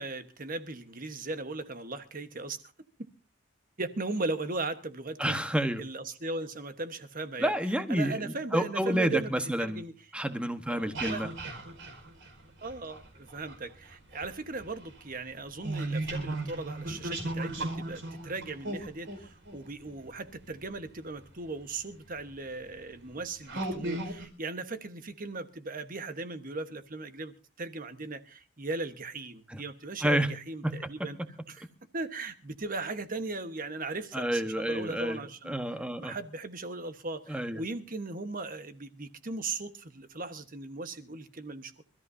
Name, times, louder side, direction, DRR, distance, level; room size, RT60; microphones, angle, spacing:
voice 1, 0.0-2.6 3.8-5.4 5.8-9.9 10.7-11.3 12.6-31.2 31.5-31.6 31.9-35.6 36.0-41.8, right 3 dB, 40° right, 1.2 m, -38 dB
voice 2, 5.2-5.8 7.4-9.8 10.1-11.3 29.5-29.6 30.0-30.3 30.6-30.8 34.1-35.2 35.5-36.1 37.3-37.6, equal, 5° right, 1.2 m, -29 dB
sound 1, 10.8-13.5 13.9-20.7 21.6-21.7 22.3-22.5 23.0-23.1 23.5-24.3, right 2 dB, 60° right, 4.9 m, -36 dB
27.5 x 14.0 x 2.7 m
head